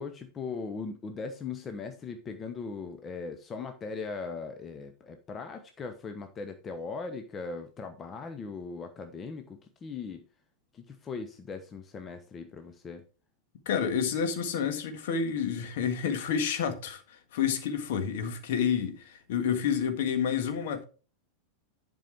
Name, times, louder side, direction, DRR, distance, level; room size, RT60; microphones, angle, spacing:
voice 1, 0.0-10.3 10.7-13.0, left 4 dB, 25° left, 1.0 m, -39 dB
voice 2, 13.7-20.8, left 7 dB, 55° left, 1.7 m, -29 dB
11.0 x 5.5 x 4.7 m
figure-of-eight pair, 90°, 0 cm